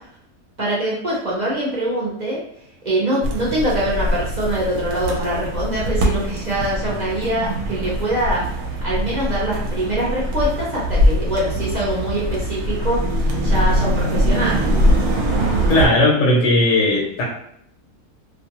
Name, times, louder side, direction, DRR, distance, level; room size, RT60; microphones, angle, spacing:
voice 1, 0.6-2.4 2.8-8.5 8.8-14.6, right 1 dB, 45° right, -6 dB, 0.6 m, -23 dB
sound 1, 3.2-15.9, equal, 70° right, 1.0 m, -22 dB
voice 2, 15.7-17.2, left 1 dB, 60° left, -2 dB, 0.9 m, -16 dB
2.5 x 2.3 x 2.9 m, 0.71 s
omnidirectional pair, 1.6 m